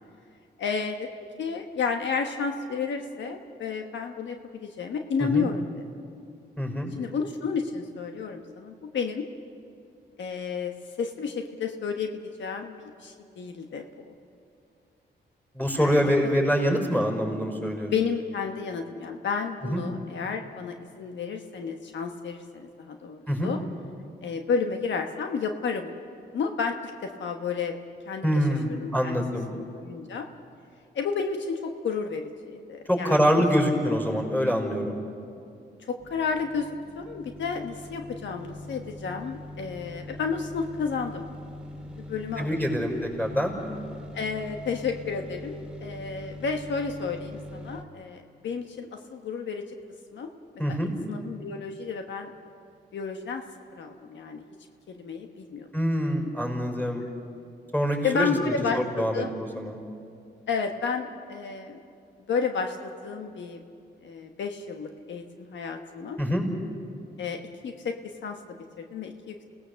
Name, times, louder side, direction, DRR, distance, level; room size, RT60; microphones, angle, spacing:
voice 1, 0.6-1.1 1.4-5.8 7.0-9.2 10.2-14.1 15.7-16.1 17.9-23.6 24.2-25.9 26.3-27.7 28.1-28.4 28.7-29.2 29.5-30.3 30.9-33.4 35.9-36.7 36.9-41.3 42.1-42.9 44.1-49.6 50.1-50.3 51.1-52.3 52.9-53.4 53.7-54.4 54.9-55.7 56.2-56.3 58.0-58.8 59.1-59.3 60.5-61.8 62.3-63.6 64.0-66.2 67.2-69.4, left 5 dB, 80° left, 4 dB, 1.3 m, -31 dB
voice 2, 6.6-6.9 15.5-17.9 19.6-19.8 23.3-23.5 28.2-29.5 32.9-35.0 42.4-43.6 50.6-50.9 55.7-57.1 57.7-59.8 66.2-66.5, equal, 10° left, 2 dB, 5.8 m, -25 dB
sound 1, 36.0-47.8, left 1 dB, 5° right, 2.4 m, -42 dB
28.5 x 18.0 x 6.9 m, 2.4 s
cardioid pair, 80°, 19 cm